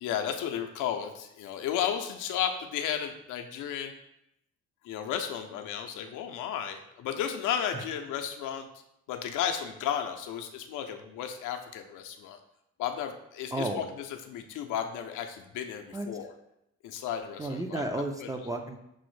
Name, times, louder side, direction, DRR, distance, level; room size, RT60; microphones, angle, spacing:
voice 1, 0.0-3.9 4.8-8.7 9.1-12.4 12.8-13.8 14.3-16.3 16.8-17.8 18.2-18.3, left 9 dB, 85° left, 5 dB, 0.5 m, -33 dB
voice 2, 13.5-13.8 15.9-16.1 17.4-18.8, right 2 dB, 10° right, 4 dB, 0.3 m, -33 dB
6.0 x 2.1 x 3.1 m, 0.81 s
cardioid pair, 90°, 30 cm